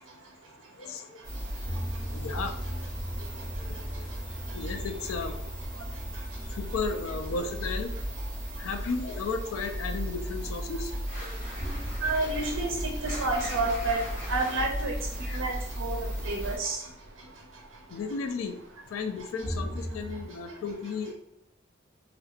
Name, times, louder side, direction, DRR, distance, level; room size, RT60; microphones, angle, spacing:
voice 1, 0.8-1.2 2.1-2.6 3.2-4.1 4.5-5.4 5.8-6.2 6.5-8.0 8.6-11.3 11.9-12.0 15.2-15.4 17.9-18.6 18.9-21.1, left 4 dB, 85° left, 7 dB, 0.4 m, -35 dB
sound 1, 1.2-16.6, equal, 40° left, 1.1 m, -36 dB
sound 2, 1.6-20.3, equal, 15° left, 0.5 m, -42 dB
sound 3, 11.1-16.7, left 1 dB, 65° left, 1.4 m, -44 dB
voice 2, 12.0-12.7 13.0-14.0 14.3-14.9 15.3-16.0 16.2-16.8, right 3 dB, 80° right, 1 dB, 0.5 m, -29 dB
3.0 x 2.8 x 2.4 m, 0.85 s
head